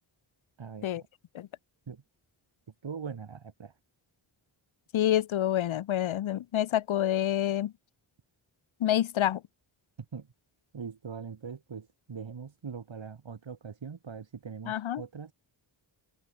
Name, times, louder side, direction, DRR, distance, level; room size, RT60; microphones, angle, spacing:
voice 1, 0.6-1.1 1.9-2.0 2.8-3.7 10.1-10.3 10.7-15.3, right 6 dB, 70° right, 4.9 m, -41 dB
voice 2, 4.9-7.7 8.8-9.4 14.7-15.0, left 12 dB, 85° left, 0.7 m, -27 dB
wide cardioid pair, 85°, 47 cm